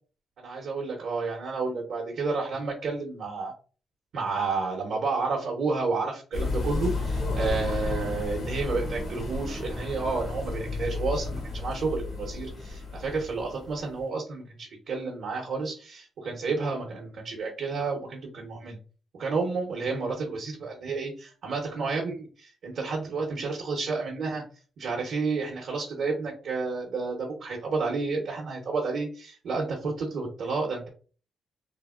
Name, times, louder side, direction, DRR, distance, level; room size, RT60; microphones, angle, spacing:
voice 1, 0.4-3.5 4.1-18.8 19.2-24.4 24.8-30.9, right 4 dB, 75° right, -1 dB, 0.8 m, -31 dB
sound 1, 6.3-13.8, left 3 dB, 70° left, 1.1 m, -32 dB
3.4 x 2.0 x 2.3 m, 0.38 s
cardioid pair, 75°, 0 cm